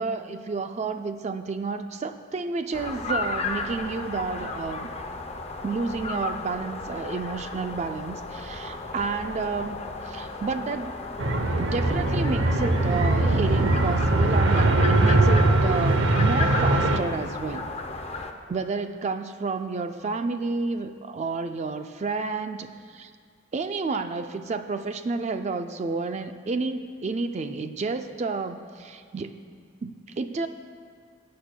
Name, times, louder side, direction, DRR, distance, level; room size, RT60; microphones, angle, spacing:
voice 1, 0.0-4.9 5.6-11.0 11.6-17.7 18.5-23.1 23.5-29.3 29.8-30.5, right 4 dB, 35° right, 8 dB, 0.3 m, -30 dB
sound 1, 2.7-18.3, left 3 dB, 30° left, 0.6 m, -34 dB
sound 2, 11.2-17.0, right 2 dB, 80° right, 0.7 m, -21 dB
19.0 x 8.4 x 2.2 m, 2.1 s
head